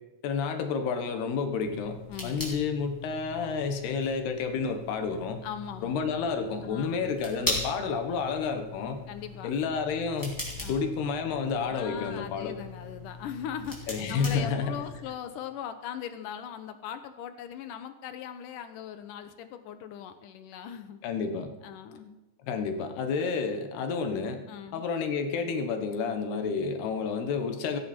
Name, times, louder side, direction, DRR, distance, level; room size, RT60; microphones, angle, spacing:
voice 1, 0.2-5.4 5.8-9.0 9.4-10.4 10.7-12.6 13.9-14.8 21.0-21.5 22.4-24.4 24.7-27.8, left 5 dB, 85° left, 6 dB, 3.5 m, -30 dB
sound 1, 1.5-15.1, left 2 dB, 5° left, 3.4 m, -40 dB
voice 2, 2.1-2.4 5.4-6.1 6.6-7.1 9.1-9.5 10.6-10.9 11.7-21.0 21.6-22.2 24.5-24.9, left 9 dB, 70° left, 9 dB, 2.2 m, -40 dB
16.5 x 15.0 x 4.5 m, 1.1 s
omnidirectional pair, 4.5 m